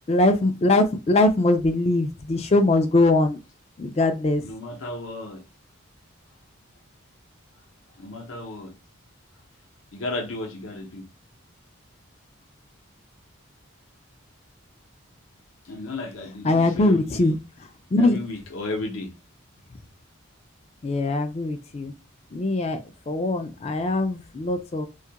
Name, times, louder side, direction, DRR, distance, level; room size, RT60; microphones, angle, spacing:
voice 1, 0.1-3.4 3.8-4.5 16.4-17.4 17.9-18.2 20.8-21.9 22.3-22.8 23.1-24.9, left 2 dB, 30° left, 0.3 m, -21 dB
voice 2, 4.4-5.4 8.0-8.7 9.9-11.1 15.6-17.4 18.0-19.1, left 2 dB, 70° left, 0.6 m, -34 dB
2.3 x 2.1 x 2.8 m
head